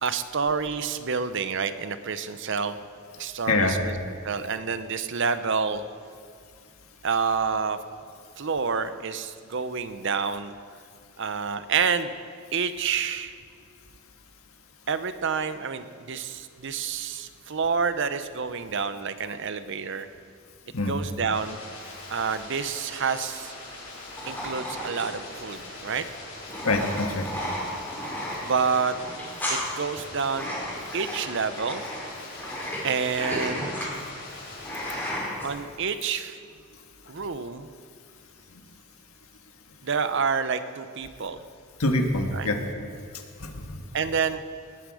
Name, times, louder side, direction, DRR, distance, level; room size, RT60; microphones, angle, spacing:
voice 1, 0.0-2.8 3.2-4.0 4.2-5.8 7.0-7.8 8.4-10.5 11.2-12.1 12.5-13.3 14.9-20.1 20.9-21.6 22.1-23.5 24.3-26.1 28.4-29.0 29.5-30.5 30.9-31.9 32.8-33.9 35.4-36.4 37.1-37.7 39.8-41.4 42.3-42.5 43.9-44.4, right 5 dB, 60° right, 11 dB, 0.7 m, -28 dB
sound 1, 21.3-35.1, left 2 dB, 55° left, 4.6 m, -42 dB
sound 2, 24.2-35.5, equal, 10° left, 4.6 m, -34 dB
voice 2, 26.6-27.3 41.8-42.6 43.4-43.8, left 2 dB, 80° left, 4 dB, 1.5 m, -25 dB
19.5 x 10.0 x 4.9 m, 2.2 s
head